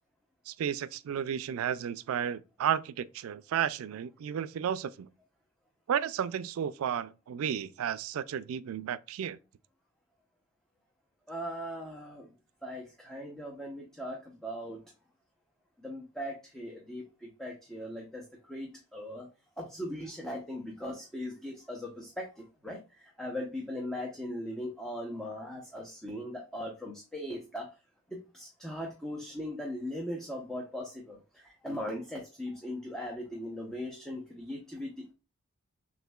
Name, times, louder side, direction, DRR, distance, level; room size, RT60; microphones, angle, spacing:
voice 1, 0.5-5.1 5.9-9.4, right 8 dB, 90° right, 0.3 m, -33 dB
voice 2, 11.3-12.3 12.6-14.8 15.8-19.3 19.6-27.7 28.1-35.1, equal, 5° left, 0.6 m, -39 dB
6.5 x 2.6 x 2.3 m
head